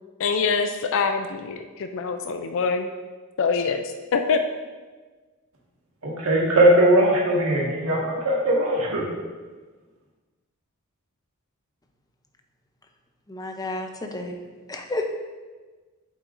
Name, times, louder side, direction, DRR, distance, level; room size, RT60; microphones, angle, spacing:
voice 1, 0.2-2.9 3.4-3.8 4.1-4.4, left 5 dB, 65° left, 6 dB, 0.4 m, -24 dB
voice 2, 6.0-9.0, right 1 dB, 70° right, -3 dB, 1.8 m, -19 dB
voice 3, 13.3-14.4 14.7-15.0, left 2 dB, 15° left, 4 dB, 0.7 m, -31 dB
7.9 x 7.7 x 2.6 m, 1.3 s
head